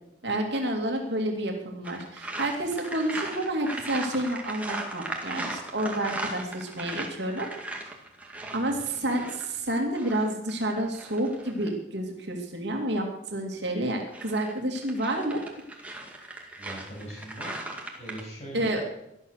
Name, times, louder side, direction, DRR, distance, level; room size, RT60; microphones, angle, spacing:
voice 1, 0.2-7.5 8.5-15.4 18.5-18.8, right 1 dB, 65° right, 1 dB, 2.6 m, -29 dB
sound 1, 1.8-11.7 13.9-18.2, right 2 dB, 10° right, 2.2 m, -38 dB
voice 2, 8.4-8.8 16.6-17.6 18.0-18.7, right 1 dB, 35° left, -4 dB, 7.6 m, -41 dB
18.5 x 12.0 x 6.6 m, 0.85 s
head